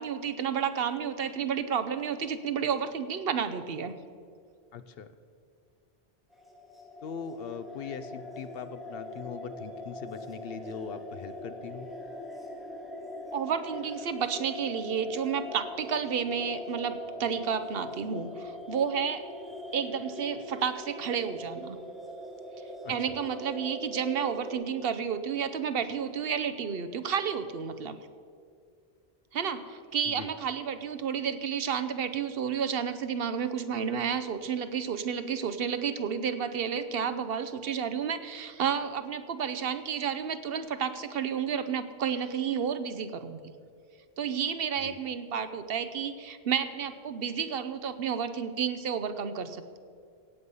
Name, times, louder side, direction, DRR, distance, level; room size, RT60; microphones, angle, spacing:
voice 1, 0.0-3.9 13.3-19.2 19.7-21.8 22.9-28.0 29.3-43.5 44.2-49.8, right 7 dB, 65° right, 10 dB, 0.9 m, -31 dB
voice 2, 4.7-5.1 7.0-11.9 22.8-22.9 30.1-30.3 44.8-45.0, left 6 dB, 70° left, 12 dB, 0.9 m, -41 dB
sound 1, 6.3-24.5, left 1 dB, ahead, 1.7 m, -42 dB
17.0 x 8.2 x 5.5 m, 2.2 s
omnidirectional pair, 1.1 m